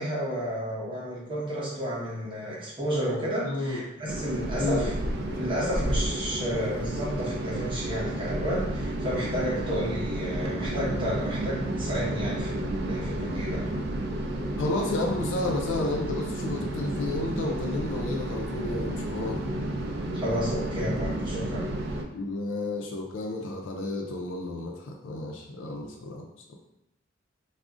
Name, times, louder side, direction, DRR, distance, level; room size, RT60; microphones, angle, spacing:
voice 1, 0.0-4.9 5.4-13.6 20.1-21.6, equal, 25° right, -6 dB, 0.9 m, -31 dB
voice 2, 3.4-3.8 4.6-4.9 14.6-19.4 22.1-26.3, left 2 dB, 80° left, 1 dB, 0.4 m, -31 dB
sound 1, 4.1-22.0, right 1 dB, 55° right, 0.4 m, -31 dB
2.4 x 2.0 x 3.6 m, 0.89 s
head